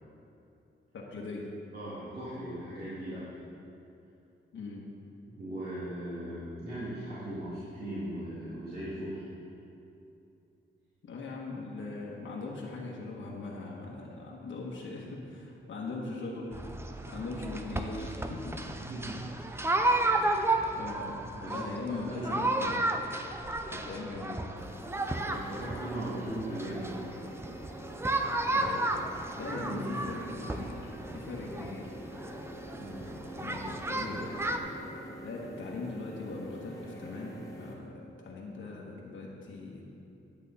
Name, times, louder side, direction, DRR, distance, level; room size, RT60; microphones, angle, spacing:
voice 1, 0.9-1.5 4.5-4.8 11.0-16.7 17.1-18.7 20.2-22.7 23.1-23.4 23.7-24.4 28.5-28.9 29.4-31.9 33.4-34.7 35.2-39.8, left 3 dB, 70° left, -3 dB, 1.3 m, -40 dB
voice 2, 1.7-3.2 5.3-9.2 18.8-19.2 21.3-22.4 25.3-26.9 29.5-30.1 32.8-33.1, right 1 dB, 50° right, -11 dB, 2.3 m, -38 dB
sound 1, 16.5-34.6, right 2 dB, 10° right, 0.5 m, -33 dB
sound 2, 24.6-37.7, equal, 15° left, 1.3 m, -46 dB
11.0 x 8.1 x 4.1 m, 2.8 s
wide cardioid pair, 160°, 20 cm